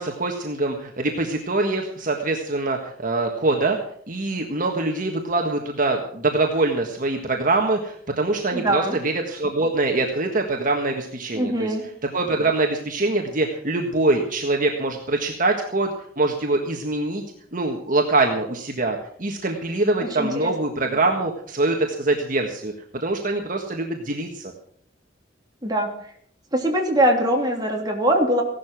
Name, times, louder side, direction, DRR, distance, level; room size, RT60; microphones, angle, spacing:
voice 1, 0.0-3.8 4.1-11.7 12.1-17.2 17.5-22.7 23.0-24.5, right 2 dB, 45° right, 2 dB, 1.6 m, -24 dB
voice 2, 8.5-9.0 11.3-11.8 20.0-20.5 25.6-25.9 26.5-28.4, right 1 dB, 20° right, 1 dB, 3.0 m, -22 dB
16.5 x 12.0 x 6.1 m, 0.63 s
head